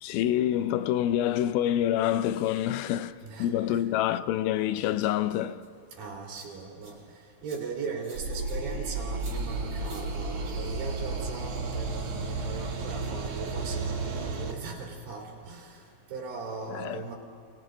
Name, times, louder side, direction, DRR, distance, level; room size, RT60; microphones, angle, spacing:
voice 1, 0.0-5.6 16.7-17.0, left 12 dB, 85° left, 2.5 m, -27 dB
voice 2, 3.2-3.9 6.0-7.0 7.4-15.8 16.1-17.1, right 4 dB, 70° right, 4.9 m, -39 dB
sound 1, 5.6-5.7 6.3-6.9 7.4-7.6 8.0-8.6 9.2-9.3 9.8-10.0, right 2 dB, 35° right, 8.1 m, -50 dB
sound 2, 8.1-14.5, right 3 dB, 50° right, 2.5 m, -33 dB
29.0 x 28.0 x 3.9 m
omnidirectional pair, 4.3 m